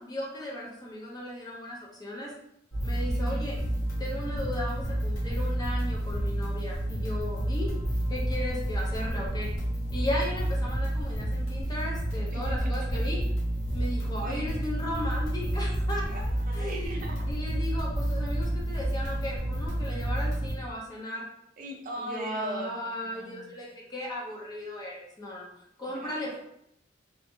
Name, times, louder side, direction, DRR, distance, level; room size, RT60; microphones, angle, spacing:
voice 1, 0.0-2.3 2.8-3.6 4.0-7.7 8.1-9.5 9.9-13.2 13.7-16.1 16.5-21.3 22.0-25.5 25.8-26.4, left 1 dB, 20° left, -3 dB, 0.4 m, -36 dB
sound 1, 2.7-20.5, right 1 dB, 85° left, 0.9 m, -30 dB
voice 2, 3.1-3.5 12.2-13.0 13.7-13.8 14.2-14.5 16.1-17.2 21.6-23.5 25.9-26.4, right 1 dB, 45° right, 1 dB, 0.5 m, -40 dB
2.6 x 2.4 x 2.6 m, 0.77 s
head